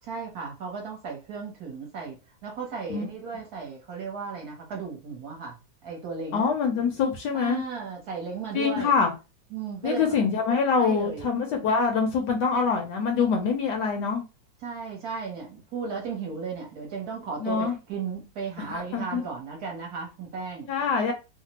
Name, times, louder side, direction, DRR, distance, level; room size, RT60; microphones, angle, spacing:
voice 1, 0.0-2.2 2.4-5.6 5.8-6.5 7.3-8.9 9.5-10.0 10.7-11.3 14.6-20.7, right 5 dB, 60° right, 1.2 m, -35 dB
voice 2, 6.3-7.6 8.5-9.1 9.8-14.2 17.4-17.7 18.7-19.2 20.7-21.1, left 5 dB, 70° left, 1.1 m, -25 dB
3.3 x 2.0 x 2.8 m
omnidirectional pair, 2.1 m